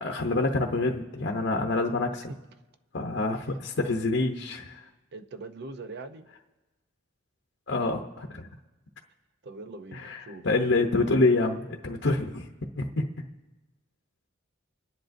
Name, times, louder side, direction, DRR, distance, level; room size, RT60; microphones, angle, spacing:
voice 1, 0.0-2.3 2.9-4.8 7.7-8.5 9.9-12.5 12.8-13.1, left 2 dB, 60° left, 2 dB, 0.8 m, -27 dB
voice 2, 5.1-6.3 9.4-10.5, right 3 dB, 55° right, 9 dB, 0.6 m, -42 dB
25.5 x 10.0 x 2.6 m, 1.1 s
head